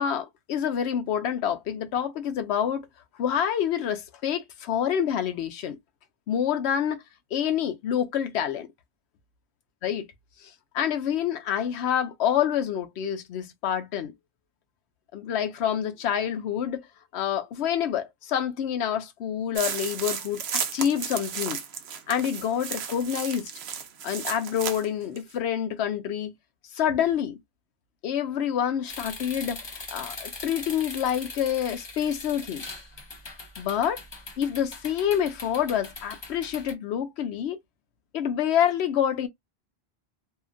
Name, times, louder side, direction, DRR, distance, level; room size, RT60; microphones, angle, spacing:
voice 1, 0.0-2.9 3.2-5.8 6.3-7.0 7.3-8.7 9.8-10.1 10.4-14.1 15.1-16.9 17.1-21.6 22.1-23.5 24.0-26.3 26.7-27.4 28.0-29.7 29.9-32.6 33.6-34.0 34.4-37.6 38.1-39.3, left 9 dB, 80° left, 0.9 m, -27 dB
sound 1, 19.5-24.9 25.2-25.3, right 7 dB, 80° right, 0.9 m, -33 dB
sound 2, 28.9-36.7, left 3 dB, 30° left, 0.6 m, -41 dB
2.8 x 2.4 x 2.5 m
omnidirectional pair, 1.1 m